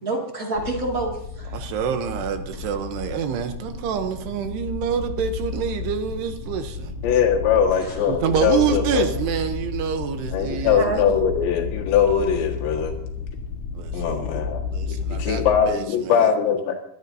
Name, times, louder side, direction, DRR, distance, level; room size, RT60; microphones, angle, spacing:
voice 1, 0.0-1.6 7.8-8.0 10.6-11.0, right 2 dB, 30° right, 0 dB, 1.7 m, -28 dB
sound 1, 0.5-15.6, left 5 dB, 55° left, 2.1 m, -32 dB
voice 2, 1.5-6.9 8.1-11.2 13.7-14.3 14.7-16.3, right 8 dB, 75° right, 7 dB, 2.9 m, -27 dB
voice 3, 7.0-9.1 10.3-13.0 13.9-16.7, left 7 dB, 85° left, -1 dB, 4.0 m, -21 dB
24.0 x 13.5 x 2.8 m, 0.72 s
omnidirectional pair, 5.0 m